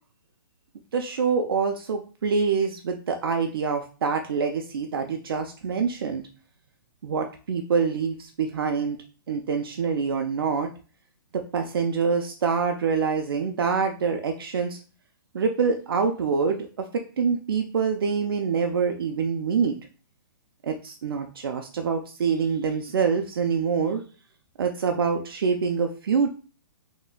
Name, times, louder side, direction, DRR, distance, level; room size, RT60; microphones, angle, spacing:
voice 1, 0.9-6.2 7.0-9.0 9.3-10.7 11.3-14.8 15.3-16.9 17.2-19.7 20.6-24.0 24.6-26.3, right 5 dB, 70° right, 4 dB, 0.5 m, -25 dB
3.9 x 2.9 x 2.2 m, 0.36 s
hypercardioid pair, 150°, 12 cm